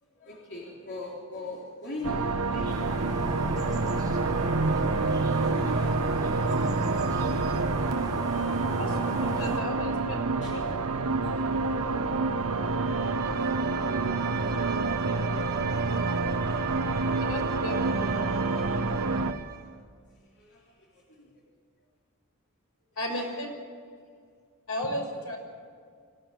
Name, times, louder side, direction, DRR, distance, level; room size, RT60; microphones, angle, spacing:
voice 1, 0.0-7.1 7.6-7.7 10.4-10.7 11.2-12.1 15.3-15.4 18.0-21.4 23.1-23.3 24.0-24.1, left 2 dB, 50° left, -3 dB, 3.7 m, -44 dB
sound 1, 2.0-19.3, right 3 dB, 80° right, 1.2 m, -28 dB
sound 2, 2.6-9.6, right 1 dB, 20° right, 4.6 m, -36 dB
voice 2, 8.8-10.2 10.5-10.6 13.8-14.1 15.0-15.3 17.3-18.1 23.0-23.5 24.7-25.4, left 1 dB, 75° left, 1 dB, 6.2 m, -34 dB
Bowed string instrument, 12.6-19.7, right 7 dB, 45° right, 1.5 m, -38 dB
25.0 x 16.5 x 9.1 m, 2.1 s
head